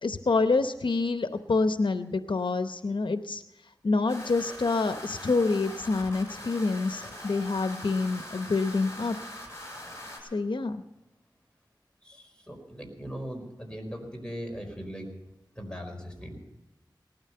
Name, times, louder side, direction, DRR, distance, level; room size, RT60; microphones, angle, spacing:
voice 1, 0.0-3.4 3.8-9.2 10.3-10.8, left 3 dB, 85° left, 9 dB, 0.8 m, -27 dB
sound 1, 4.1-10.2, left 1 dB, 35° left, 7.1 m, -42 dB
voice 2, 12.0-15.1 15.5-16.4, equal, 10° left, 2 dB, 4.7 m, -39 dB
19.0 x 13.0 x 5.7 m, 0.98 s
wide cardioid pair, 50°, 8 cm